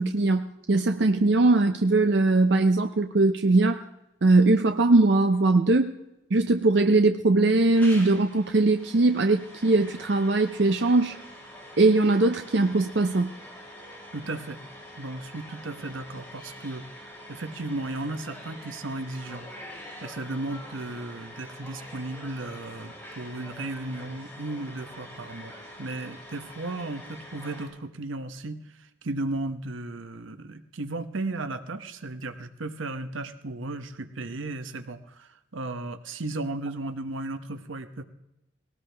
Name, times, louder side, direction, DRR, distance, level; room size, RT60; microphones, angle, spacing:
voice 1, 0.0-3.8 4.2-5.9 6.3-11.2 11.8-13.3, right 2 dB, 60° right, 7 dB, 0.6 m, -21 dB
sound 1, 7.7-27.7, equal, 10° left, 7.4 m, -45 dB
voice 2, 14.1-14.6 15.0-19.5 20.0-25.5 25.8-28.6 29.0-38.0, right 2 dB, 80° right, 9 dB, 1.0 m, -35 dB
19.0 x 18.0 x 3.4 m, 0.92 s
head